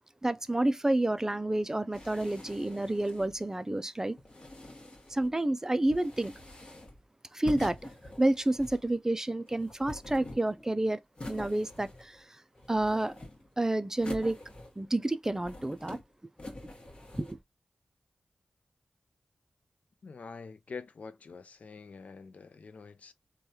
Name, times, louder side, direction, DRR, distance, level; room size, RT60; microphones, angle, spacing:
voice 1, 0.2-4.2 5.1-6.3 7.3-7.8 8.2-11.0 11.3-12.2 12.7-13.2 13.6-14.4 14.8-16.0 17.2-17.4, right 1 dB, 20° right, 0.4 m, -29 dB
sound 1, 1.9-3.4 4.2-5.3 5.8-7.0 7.5-8.9 9.5-10.7 11.2-12.2 12.5-13.5 14.0-14.9 15.3-16.0 16.4-17.3, left 1 dB, 40° left, 1.1 m, -45 dB
voice 2, 20.0-23.1, left 4 dB, 65° left, 0.4 m, -46 dB
3.2 x 2.2 x 2.7 m
cardioid pair, 55°, 3 cm